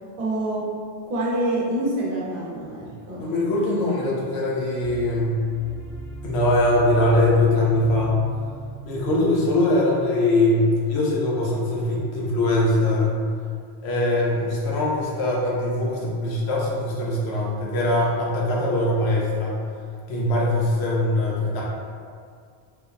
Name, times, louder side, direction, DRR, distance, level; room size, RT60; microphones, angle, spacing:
voice 1, 0.2-0.7 1.0-3.3, right 1 dB, 60° right, -6 dB, 0.8 m, -26 dB
voice 2, 3.2-5.4 6.2-8.2 8.8-13.2 13.8-19.6 20.1-21.6, left 1 dB, 85° left, -4 dB, 0.9 m, -22 dB
sound 1, 4.8-10.1, right 4 dB, 70° left, 1.2 m, -39 dB
3.2 x 2.1 x 2.4 m, 2.2 s
omnidirectional pair, 1.1 m